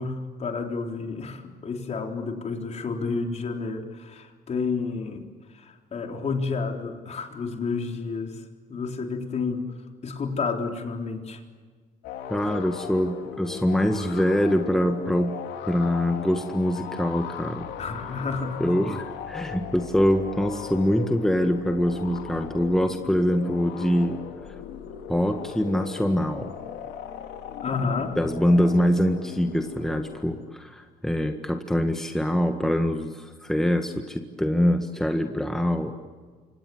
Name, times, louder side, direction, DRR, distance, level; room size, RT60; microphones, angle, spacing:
voice 1, 0.0-5.3 5.5-8.4 8.7-9.7 10.0-11.4 17.8-18.8 27.6-28.2, left 4 dB, 40° left, 3 dB, 4.1 m, -30 dB
sound 1, 12.0-30.5, left 7 dB, 85° left, 2.8 m, -38 dB
voice 2, 12.3-15.3 15.6-17.7 18.6-24.2 25.1-26.5 28.2-35.9, equal, 5° left, 5 dB, 1.7 m, -24 dB
28.5 x 26.0 x 7.9 m, 1.5 s
cardioid pair, 110°, 17 cm